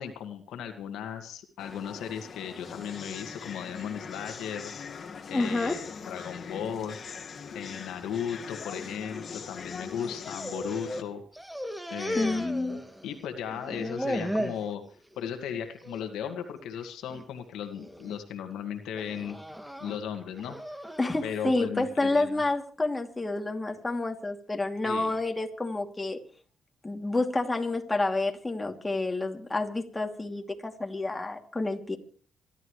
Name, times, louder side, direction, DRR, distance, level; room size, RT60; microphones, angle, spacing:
voice 1, 0.0-4.7 5.3-7.0 7.5-11.2 11.9-14.8 15.2-19.4 19.8-20.6 21.2-22.4 24.8-25.1, left 8 dB, 85° left, 6 dB, 1.9 m, -36 dB
sound 1, 1.6-11.0, left 5 dB, 55° left, 1.9 m, -41 dB
voice 2, 5.3-5.8 12.1-12.8 21.0-26.2 26.8-32.0, left 2 dB, 20° left, 3 dB, 2.8 m, -29 dB
sound 2, 10.0-11.1 11.3-13.2 13.5-14.7 15.1-15.5 15.8-16.0 16.8-17.2 17.8-18.2 19.0-21.2, equal, 5° right, 1.8 m, -36 dB
26.0 x 12.5 x 3.3 m, 0.43 s
cardioid pair, 70°, 0 cm